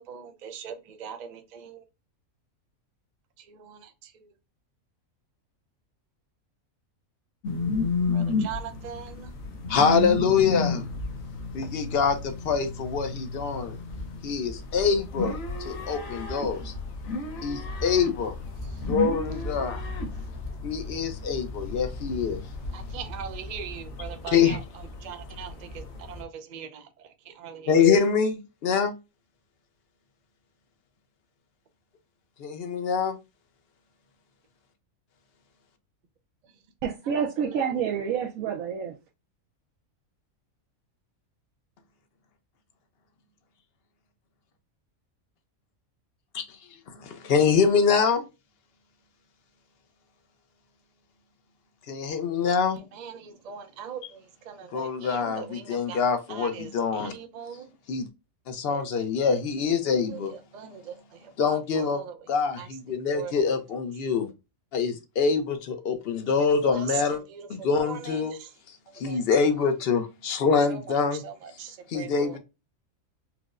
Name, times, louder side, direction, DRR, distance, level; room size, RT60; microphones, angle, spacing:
voice 1, 0.0-1.8 3.4-4.3 8.1-9.3 22.7-24.6 25.0-27.7 37.0-37.6 52.9-56.0 56.3-57.7 58.7-58.8 59.3-59.4 59.9-62.2 62.6-62.7 63.1-63.3 66.4-66.9 67.3-68.5 69.1-69.2 70.7-72.4, right 7 dB, 55° right, 0.4 m, -41 dB
sound 1, 7.4-26.2, left 3 dB, 75° left, 1.1 m, -33 dB
voice 2, 9.7-10.8 11.5-13.8 14.2-16.7 17.4-18.3 18.9-19.8 20.6-22.4 24.3-24.6 27.7-28.9 32.4-33.2 46.3-46.4 46.9-48.3 51.9-52.8 54.7-57.1 57.9-58.1 58.5-60.3 61.4-62.0 62.3-64.3 64.7-67.2 67.5-68.3 68.9-71.2 71.9-72.4, left 6 dB, 60° left, 0.7 m, -25 dB
voice 3, 36.8-38.9, right 7 dB, 80° right, 1.0 m, -28 dB
4.5 x 2.0 x 2.4 m
omnidirectional pair, 1.4 m